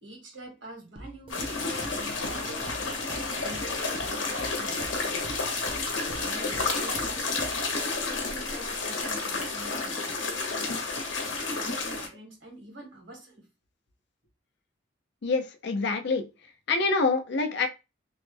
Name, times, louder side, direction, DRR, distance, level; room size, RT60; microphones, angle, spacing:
voice 1, 0.0-3.0 3.4-5.4 5.9-7.5 8.0-10.7 11.5-13.5, right 1 dB, 70° right, 1.6 m, -46 dB
sound 1, 1.0-7.8, right 1 dB, 25° right, 0.4 m, -45 dB
sound 2, 1.3-12.1, left 3 dB, 75° left, 0.9 m, -31 dB
voice 2, 15.2-16.3 16.7-17.7, left 3 dB, 60° left, 0.5 m, -26 dB
3.1 x 2.1 x 3.1 m
head